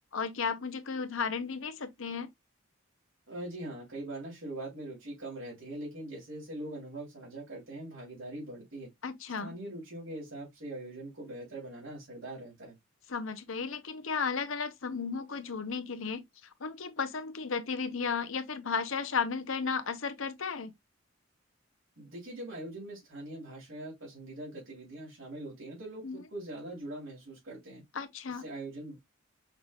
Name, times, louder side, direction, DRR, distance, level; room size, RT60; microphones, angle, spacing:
voice 1, 0.1-2.3 9.0-9.5 13.1-16.2 16.6-20.7 26.0-26.2 27.9-28.5, left 5 dB, 75° left, 0.8 m, -34 dB
voice 2, 3.3-8.9 9.4-12.7 22.0-27.8 28.3-29.0, right 1 dB, 70° right, 3.1 m, -42 dB
5.9 x 3.3 x 2.4 m
head